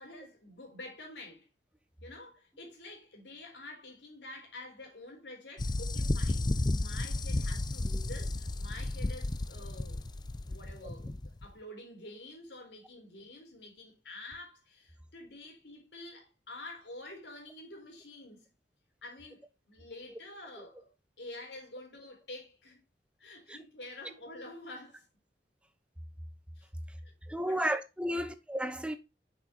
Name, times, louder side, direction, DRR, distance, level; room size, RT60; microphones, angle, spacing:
voice 1, 0.0-1.5 2.0-10.1 10.4-18.5 19.0-20.9 21.2-22.8 23.2-25.0 26.6-26.7 27.0-27.7 28.1-28.2, left 2 dB, 80° left, 4.1 m, -48 dB
sound 1, 5.6-11.5, left 2 dB, 25° left, 0.5 m, -33 dB
voice 2, 27.3-29.0, equal, 5° right, 0.9 m, -33 dB
8.5 x 6.4 x 2.9 m
head